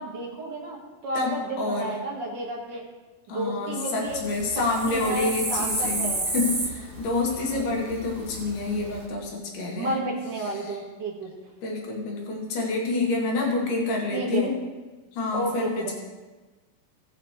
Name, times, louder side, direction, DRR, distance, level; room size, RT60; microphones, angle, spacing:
voice 1, 0.0-2.8 3.3-4.2 4.5-6.3 7.3-7.6 9.7-11.3 14.1-14.5 15.3-15.9, right 2 dB, 40° right, -3 dB, 1.9 m, -32 dB
voice 2, 1.1-1.9 3.3-9.9 10.6-10.8 11.6-14.5 15.1-15.9, left 3 dB, 65° left, -1 dB, 3.2 m, -28 dB
sound 1, 4.0-9.1, right 2 dB, 75° right, 0.6 m, -32 dB
18.5 x 6.5 x 3.3 m, 1.2 s
omnidirectional pair, 4.1 m